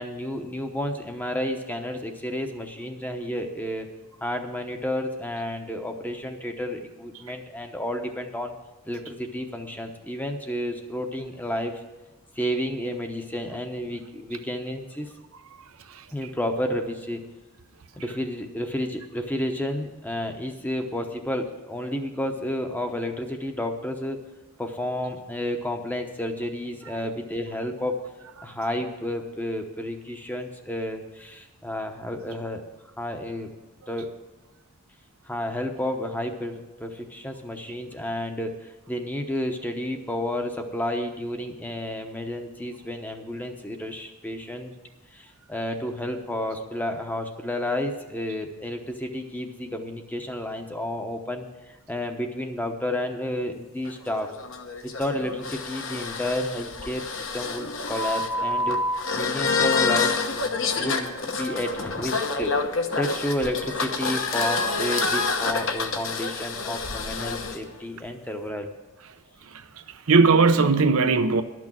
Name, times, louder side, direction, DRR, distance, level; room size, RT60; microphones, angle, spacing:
voice 1, 0.0-3.9 4.2-8.5 8.8-11.8 12.3-15.1 16.1-17.2 18.0-24.2 24.6-28.0 28.4-32.6 33.0-33.5 33.9-34.1 35.2-44.7 45.1-54.3 54.8-58.8 59.1-62.5 63.0-68.7, left 1 dB, 10° left, 0.8 m, -31 dB
sound 1, 53.8-67.6, left 4 dB, 60° left, 1.0 m, -27 dB
voice 2, 69.4-71.4, right 4 dB, 70° right, 0.7 m, -20 dB
12.0 x 6.1 x 8.9 m
head